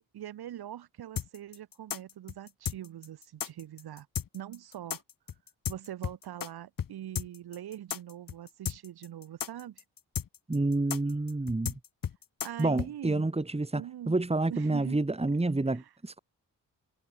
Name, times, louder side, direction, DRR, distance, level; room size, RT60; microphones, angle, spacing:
voice 1, 0.0-4.1 4.3-5.0 5.7-9.8 12.4-13.3 13.7-14.2 14.5-15.0 15.7-15.9, right 11 dB, 85° right, 7.0 m, -43 dB
sound 1, 1.2-6.5 6.8-6.9 7.1-12.9, left 8 dB, 60° left, 2.2 m, -34 dB
voice 2, 10.5-11.7 12.6-16.2, right 2 dB, 15° right, 2.4 m, -29 dB
cardioid pair, 65°, 37 cm